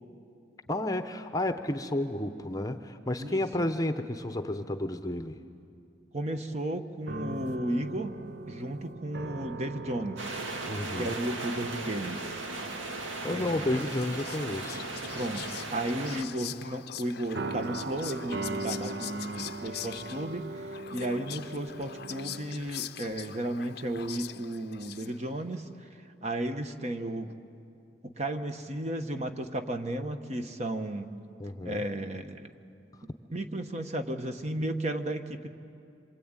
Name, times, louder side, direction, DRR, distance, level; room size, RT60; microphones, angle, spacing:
voice 1, 0.7-5.4 10.7-11.2 13.2-14.9 31.4-31.8, left 1 dB, 20° left, 8 dB, 0.8 m, -31 dB
voice 2, 6.1-8.1 8.5-10.3 11.0-12.3 13.2-13.9 15.1-15.4 15.7-25.9 26.2-27.4 28.0-31.1 31.6-32.5 33.3-35.5, right 1 dB, 35° right, 7 dB, 1.2 m, -34 dB
sound 1, 7.0-13.2 13.5-13.8 14.7-15.5 17.3-22.6, right 2 dB, 55° right, 0.7 m, -40 dB
sound 2, 10.2-16.2, right 2 dB, 80° right, 2.0 m, -37 dB
Whispering, 13.4-25.4, left 11 dB, 55° left, 0.6 m, -43 dB
27.0 x 24.5 x 9.0 m, 2.5 s
head